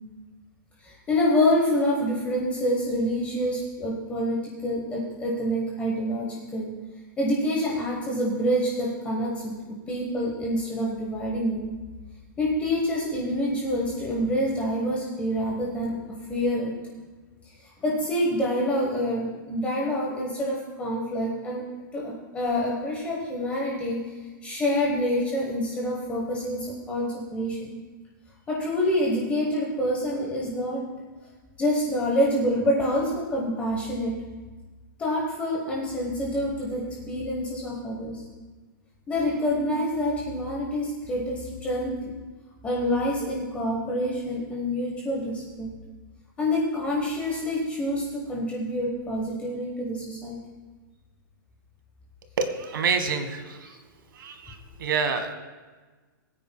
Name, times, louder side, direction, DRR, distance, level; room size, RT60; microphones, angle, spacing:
voice 1, 0.8-6.7 7.2-11.7 12.4-16.0 16.3-16.7 17.6-21.6 21.9-24.1 24.4-27.7 28.5-30.8 31.6-34.1 35.0-38.2 39.1-42.0 42.6-45.7 46.4-50.4, equal, 10° left, -3 dB, 1.1 m, -27 dB
voice 2, 52.4-53.8 54.1-55.3, right 5 dB, 70° right, 8 dB, 1.5 m, -28 dB
21.0 x 9.3 x 2.3 m, 1.3 s
hypercardioid pair, 170°, 12 cm